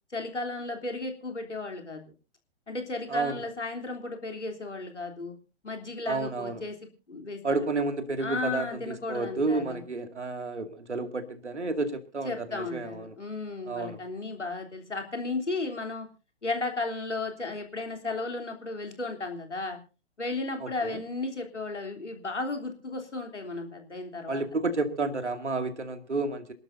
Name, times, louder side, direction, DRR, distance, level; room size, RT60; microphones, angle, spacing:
voice 1, 0.1-2.0 2.7-5.3 5.6-6.8 7.1-7.7 8.2-9.8 12.2-16.1 16.4-19.8 20.2-24.4, left 3 dB, 80° left, 4 dB, 3.4 m, -34 dB
voice 2, 3.1-3.4 6.1-6.6 7.4-13.1 13.7-14.0 20.6-21.0 24.3-26.5, right 3 dB, 75° right, 7 dB, 2.4 m, -31 dB
27.5 x 12.0 x 2.7 m, 0.32 s
figure-of-eight pair, 120°, 35 cm